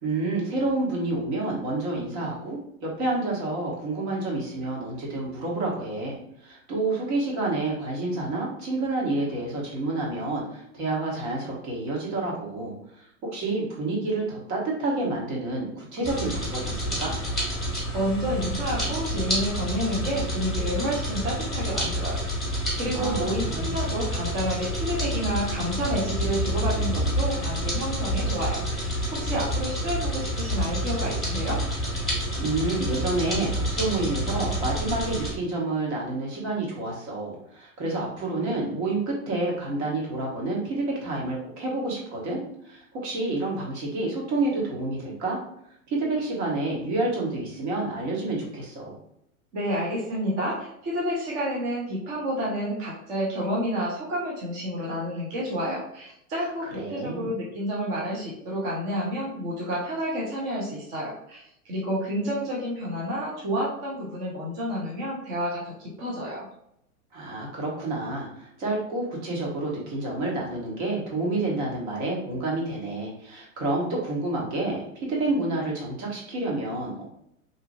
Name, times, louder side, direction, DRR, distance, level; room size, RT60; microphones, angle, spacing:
voice 1, 0.0-17.2 22.9-23.7 32.4-42.4 42.6-45.4 45.9-48.9 56.4-56.5 56.7-57.3 67.1-77.0, right 2 dB, 50° right, -3 dB, 1.3 m, -29 dB
sound 1, 16.0-35.3, equal, ahead, 1.2 m, -28 dB
voice 2, 17.9-22.2 22.8-31.6 49.5-66.5, equal, 20° right, -4 dB, 0.3 m, -30 dB
2.8 x 2.4 x 2.5 m, 0.75 s
hypercardioid pair, 110°, 44 cm